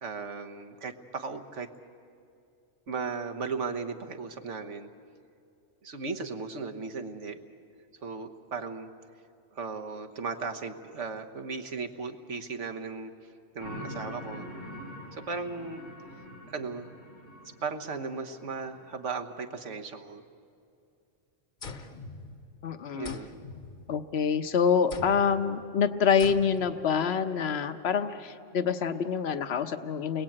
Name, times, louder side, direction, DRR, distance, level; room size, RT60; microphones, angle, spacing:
voice 1, 0.0-1.7 2.9-4.9 5.8-7.4 8.0-8.9 9.5-13.1 13.5-14.5 15.1-15.8 16.5-17.0 17.6-20.2 22.9-23.4, right 4 dB, 75° right, 5 dB, 1.6 m, -36 dB
sound 1, 13.6-19.1, left 1 dB, 85° left, 3.7 m, -44 dB
sound 2, 21.6-22.7 23.0-24.3 24.9-25.4 26.2-26.8, left 3 dB, 45° left, 1.2 m, -44 dB
voice 2, 22.6-23.2 23.9-30.2, left 6 dB, 60° left, 9 dB, 1.2 m, -26 dB
30.0 x 21.5 x 8.8 m, 2.5 s
omnidirectional pair, 1.2 m